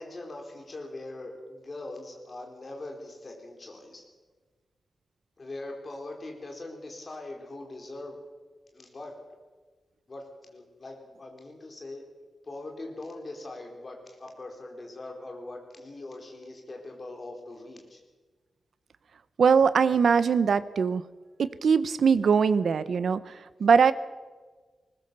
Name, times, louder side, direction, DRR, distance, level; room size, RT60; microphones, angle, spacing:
voice 1, 0.0-4.0 5.4-8.2 8.7-9.2 10.1-12.0 12.4-18.0, left 2 dB, 30° left, 2 dB, 4.2 m, -41 dB
voice 2, 19.4-21.0 21.4-23.2 23.6-23.9, right 6 dB, 60° right, 14 dB, 0.9 m, -21 dB
20.0 x 20.0 x 6.9 m, 1.4 s
wide cardioid pair, 180°, 0 cm